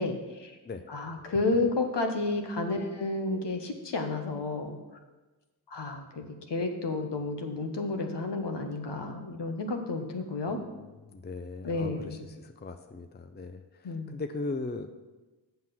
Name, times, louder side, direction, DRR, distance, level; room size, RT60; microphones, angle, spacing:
voice 1, 0.0-0.5 0.9-4.8 5.7-10.6 11.6-12.3 13.8-14.2, left 3 dB, 60° left, 5 dB, 1.3 m, -31 dB
voice 2, 10.5-14.9, left 3 dB, 20° left, 7 dB, 0.6 m, -39 dB
7.4 x 5.8 x 5.9 m, 1.2 s
cardioid pair, 40°, 48 cm